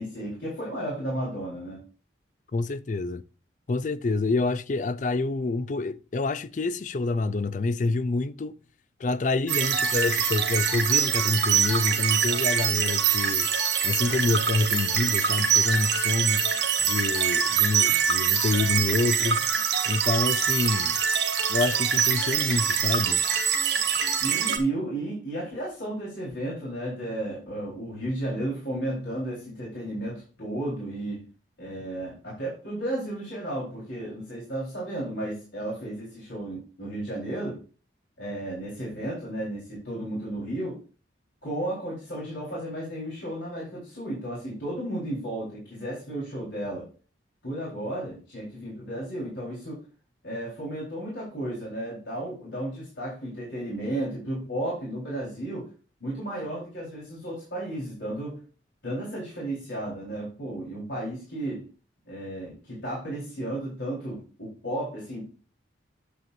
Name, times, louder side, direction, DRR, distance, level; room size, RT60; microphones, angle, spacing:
voice 1, 0.0-1.8 24.2-31.2 31.6-37.6 38.2-40.8 41.4-46.9 47.4-49.8 50.2-55.7 56.0-58.4 58.8-61.7 62.1-65.3, right 1 dB, 70° left, 4.0 m, -33 dB
voice 2, 2.5-3.2 3.7-8.6 9.0-13.5 13.8-16.4 16.8-19.5 19.9-21.0 21.5-23.2, left 3 dB, 40° left, 0.4 m, -27 dB
sound 1, 9.5-24.6, right 7 dB, 65° right, 1.5 m, -24 dB
10.0 x 7.6 x 2.6 m
head